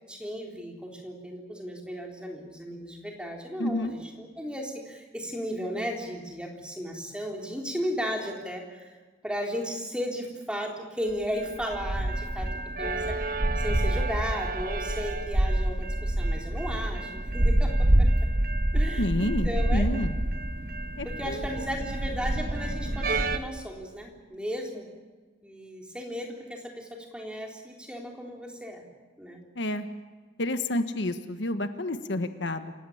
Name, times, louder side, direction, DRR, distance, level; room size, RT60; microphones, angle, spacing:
voice 1, 0.1-8.9 9.2-18.1 18.7-19.8 21.0-24.9 25.4-28.8 29.2-29.4, equal, 5° right, 0 dB, 3.7 m, -35 dB
voice 2, 3.6-3.9 19.0-20.2 21.0-21.7 29.5-29.9 30.4-32.7, left 1 dB, 80° left, 9 dB, 1.4 m, -30 dB
sound 1, 11.2-23.4, right 1 dB, 50° right, 1.2 m, -27 dB
27.5 x 16.5 x 8.7 m, 1.3 s
head